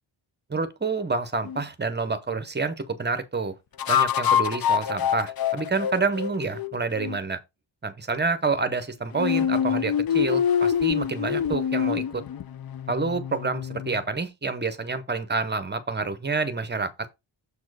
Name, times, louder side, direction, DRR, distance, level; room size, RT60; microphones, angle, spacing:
voice 1, 0.5-3.5 3.9-7.4 7.8-12.0 12.9-16.9, right 4 dB, 20° right, 0.8 m, -28 dB
sound 1, 1.4-1.6 3.8-7.2 9.1-14.0, left 8 dB, 50° left, 0.5 m, -25 dB
7.1 x 4.3 x 4.8 m
wide cardioid pair, 160°, 48 cm